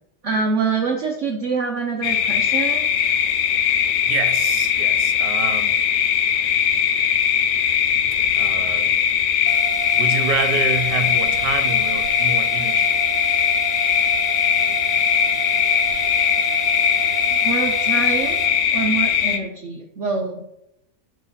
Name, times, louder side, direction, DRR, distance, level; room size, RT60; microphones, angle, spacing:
voice 1, 0.2-2.8 17.3-18.4 18.7-20.4, right 4 dB, 60° right, 2 dB, 0.8 m, -25 dB
sound 1, 2.0-19.4, left 8 dB, 85° left, 1.4 m, -20 dB
voice 2, 3.9-5.8 8.1-8.9 9.9-13.0 14.9-15.3, right 5 dB, 80° right, 8 dB, 1.4 m, -28 dB
sound 2, 9.5-18.5, right 12 dB, 30° right, 1.2 m, -32 dB
9.2 x 3.1 x 5.7 m, 0.81 s
omnidirectional pair, 1.9 m